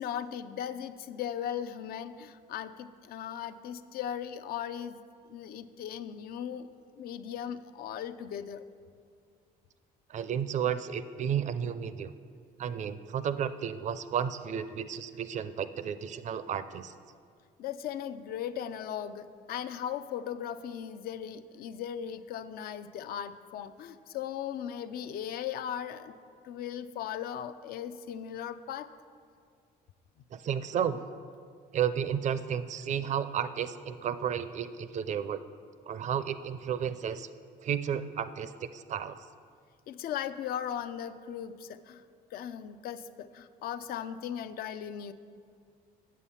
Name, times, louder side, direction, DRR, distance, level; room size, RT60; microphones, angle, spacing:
voice 1, 0.0-5.0 5.3-6.7 7.0-8.6 17.6-26.1 26.4-28.9 39.9-42.0 42.3-45.1, left 9 dB, 65° left, 11 dB, 0.5 m, -38 dB
voice 2, 10.1-12.1 12.6-16.9 30.3-31.0 31.7-35.4 35.9-37.3 37.6-39.2, right 8 dB, 45° right, 13 dB, 0.5 m, -32 dB
8.4 x 7.2 x 5.7 m, 2.2 s
cardioid pair, 110°, 17 cm